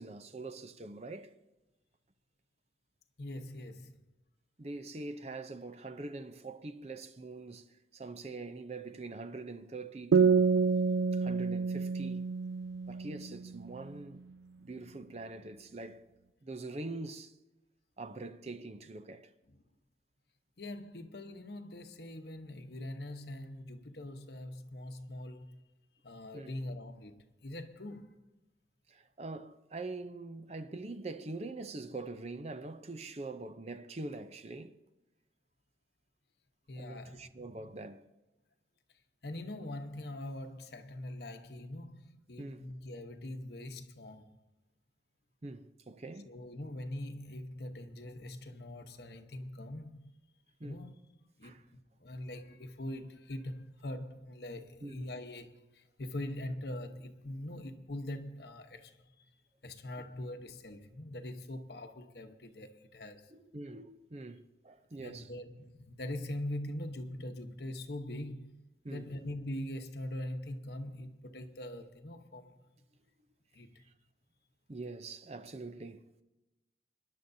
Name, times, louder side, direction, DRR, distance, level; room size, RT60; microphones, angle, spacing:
voice 1, 0.0-1.3 4.6-10.5 11.1-12.3 12.9-14.2 14.6-16.1 16.4-17.3 18.0-19.3 26.3-26.5 28.9-34.8 36.8-38.1 42.4-42.7 45.4-46.3 50.6-50.8 51.4-51.6 54.8-55.0 63.3-65.3 68.8-69.1 74.7-76.0, right 2 dB, 35° right, 0.6 m, -44 dB
voice 2, 3.2-3.9 20.6-25.6 26.0-28.1 36.7-37.7 39.2-44.3 46.3-50.2 50.6-50.9 51.4-59.1 59.6-63.3 65.0-72.6 73.5-73.8, left 1 dB, 70° left, 1.0 m, -43 dB
sound 1, 10.1-13.6, right 5 dB, 85° right, 0.3 m, -28 dB
25.5 x 11.0 x 2.7 m
head